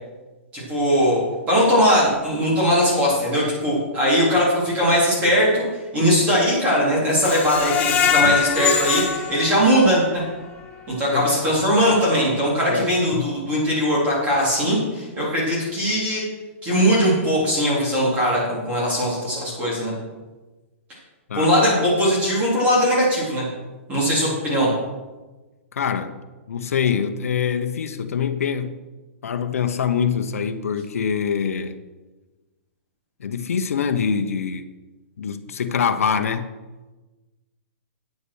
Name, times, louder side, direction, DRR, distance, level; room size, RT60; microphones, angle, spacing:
voice 1, 0.5-1.2 1.5-5.6 5.9-10.2 10.9-16.2 16.6-19.9 21.3-23.4 23.9-24.7, equal, 20° right, 4.0 m, -20 dB
Screech, 7.2-10.2 10.6-10.7 11.1-11.2, left 7 dB, 20° left, 1.5 m, -22 dB
voice 2, 12.7-13.5 21.3-21.5 25.7-26.2 26.5-28.8 29.2-31.8 33.2-34.7 35.2-36.5, left 7 dB, 90° left, 0.9 m, -24 dB
9.1 x 8.3 x 6.4 m
hypercardioid pair, 160°, 8 cm